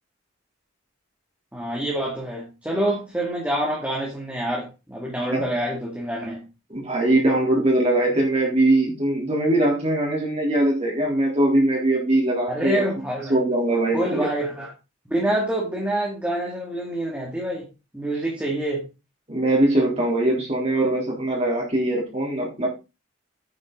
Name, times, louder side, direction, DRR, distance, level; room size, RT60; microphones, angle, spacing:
voice 1, 1.5-6.4 12.5-13.4 13.9-14.7 15.1-17.7 17.9-18.9, right 1 dB, 5° right, -2 dB, 2.2 m, -26 dB
voice 2, 6.7-12.8 13.3-14.3 19.3-22.7, right 1 dB, 30° right, -2 dB, 3.4 m, -21 dB
9.7 x 8.4 x 3.8 m, 0.28 s
head